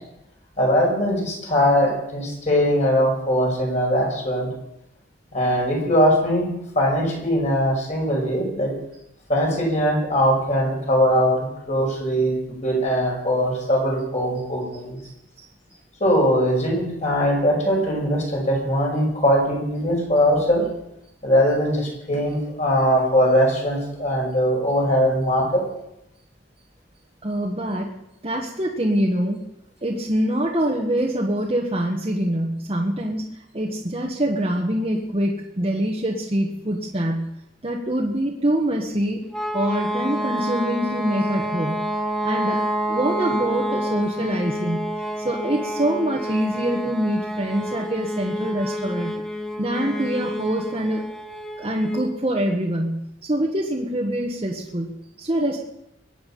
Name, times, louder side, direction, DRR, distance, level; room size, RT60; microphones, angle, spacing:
voice 1, 0.6-4.5 5.3-6.5 6.8-8.7 9.3-15.0 16.0-20.6 21.2-25.6, equal, 40° left, -2 dB, 5.6 m, -21 dB
voice 2, 27.2-27.9 28.2-29.4 29.8-37.3 37.6-39.2 39.5-41.9 42.2-44.9 45.2-49.2 49.6-51.1 51.6-55.6, right 1 dB, 30° right, -2 dB, 1.5 m, -25 dB
sound 1, 39.3-52.1, equal, 5° left, 1.4 m, -28 dB
23.0 x 9.5 x 5.5 m, 0.84 s
head